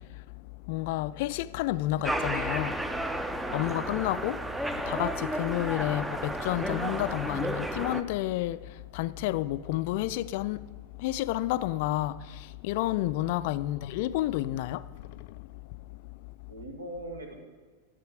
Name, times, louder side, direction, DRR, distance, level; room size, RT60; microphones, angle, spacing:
voice 1, 0.0-2.9 3.2-4.4 4.7-10.7 10.9-15.8 16.2-16.3, left 15 dB, 50° left, 0.3 m, -31 dB
sound 1, 2.0-8.0, right 1 dB, 5° right, 0.5 m, -32 dB
voice 2, 16.5-17.4, right 1 dB, 75° right, 1.6 m, -42 dB
12.0 x 7.4 x 5.0 m
figure-of-eight pair, 90°, 0 cm